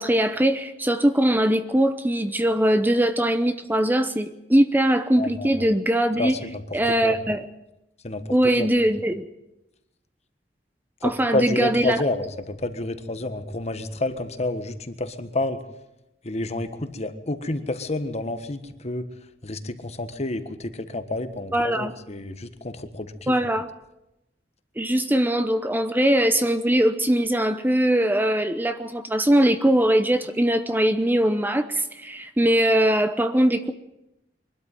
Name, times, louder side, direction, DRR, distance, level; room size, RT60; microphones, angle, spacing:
voice 1, 0.0-6.3 6.7-7.5 8.3-9.2 11.0-12.0 21.5-21.9 23.3-23.6 24.8-33.7, right 1 dB, 10° right, 10 dB, 0.8 m, -21 dB
voice 2, 5.2-5.7 6.2-7.2 8.0-8.7 11.0-15.6 16.2-19.1 19.4-23.4, left 2 dB, 40° left, 9 dB, 1.5 m, -29 dB
23.0 x 12.5 x 9.1 m, 0.92 s
head